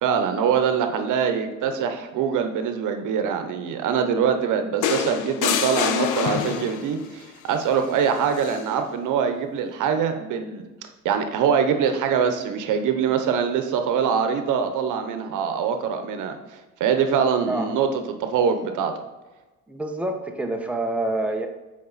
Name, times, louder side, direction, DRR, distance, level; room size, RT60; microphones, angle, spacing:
voice 1, 0.0-10.6 11.0-18.9, right 7 dB, 85° right, 7 dB, 0.9 m, -23 dB
sound 1, 4.8-7.0 8.4-8.6, left 8 dB, 85° left, 0.7 m, -25 dB
voice 2, 19.7-21.5, right 2 dB, 5° right, 3 dB, 1.0 m, -27 dB
8.4 x 4.9 x 4.1 m, 1.1 s
cardioid pair, 90°, 30 cm